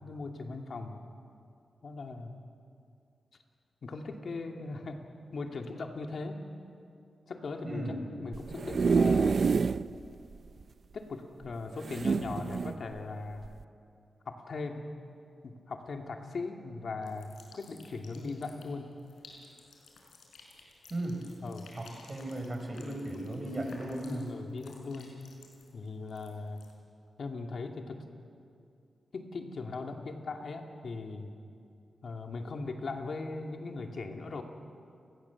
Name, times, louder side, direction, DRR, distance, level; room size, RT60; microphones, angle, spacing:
voice 1, 0.0-1.0 1.8-2.4 3.8-5.0 5.3-6.5 7.3-9.4 10.9-13.5 14.3-14.8 15.4-19.0 21.4-21.7 23.1-23.4 24.3-25.1 25.7-26.6 27.2-28.0 29.1-31.3 32.0-34.4, left 3 dB, 60° left, 3 dB, 2.5 m, -39 dB
voice 2, 7.6-8.1 20.9-21.2 21.8-24.3, right 1 dB, 30° right, 3 dB, 5.3 m, -36 dB
sound 1, 8.3-9.9 10.3-10.4 10.6-10.7 11.8-12.8 13.4-13.6, right 5 dB, 55° right, 0.5 m, -27 dB
sound 2, 17.0-26.7, left 3 dB, 90° left, 5.4 m, -56 dB
29.5 x 20.5 x 7.3 m, 2.5 s
wide cardioid pair, 105°, 0 cm